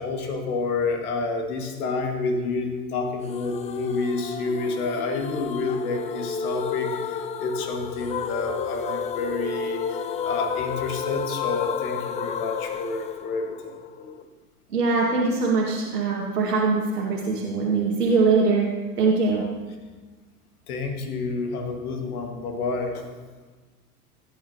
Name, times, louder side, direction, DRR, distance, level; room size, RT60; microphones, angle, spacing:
voice 1, 0.0-13.7 14.0-14.1 20.7-23.1, left 3 dB, 70° left, 4 dB, 1.9 m, -29 dB
sound 1, 3.3-14.2, left 6 dB, 15° left, 0.4 m, -31 dB
voice 2, 14.7-18.7 19.0-19.4, right 4 dB, 80° right, -3 dB, 1.9 m, -22 dB
16.5 x 9.6 x 2.9 m, 1.3 s
figure-of-eight pair, 85°, 46 cm